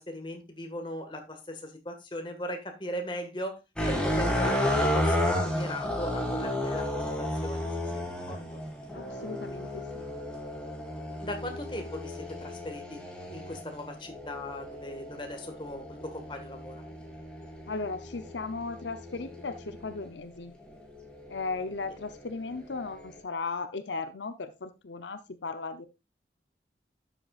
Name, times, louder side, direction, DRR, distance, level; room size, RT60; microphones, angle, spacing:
voice 1, 0.0-3.6 3.9-7.1 7.4-7.7 7.9-8.6 11.2-13.0 13.3-16.8, left 1 dB, 25° left, 4 dB, 1.8 m, -38 dB
sound 1, 3.8-20.1 20.7-23.2, left 1 dB, 5° left, 2.3 m, -33 dB
voice 2, 8.9-10.1 17.7-20.5 21.3-25.9, left 3 dB, 85° left, 10 dB, 0.8 m, -36 dB
12.0 x 7.7 x 2.5 m, 0.25 s
head